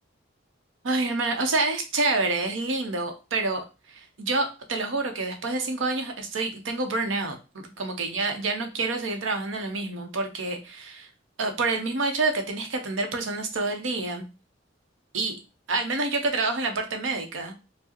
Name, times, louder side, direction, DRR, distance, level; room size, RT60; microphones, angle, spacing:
voice 1, 0.8-11.1 11.4-14.3 15.1-15.4 15.7-17.5, right 3 dB, 90° right, 5 dB, 0.7 m, -28 dB
4.6 x 2.0 x 2.9 m, 0.30 s
head